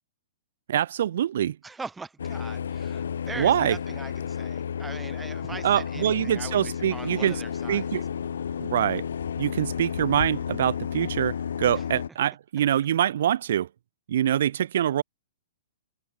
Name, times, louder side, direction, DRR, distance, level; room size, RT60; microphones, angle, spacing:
voice 1, 0.7-1.6 3.4-3.8 5.6-7.4 7.7-8.0 8.6-9.0 9.4-13.7 14.1-15.0, right 10 dB, 55° right, 1.7 m, -24 dB
voice 2, 1.6-7.9 11.7-11.8, right 4 dB, 5° right, 2.0 m, -41 dB
sound 1, 2.2-12.1, left 7 dB, 85° left, 3.0 m, -32 dB
hypercardioid pair, 170°, 0 cm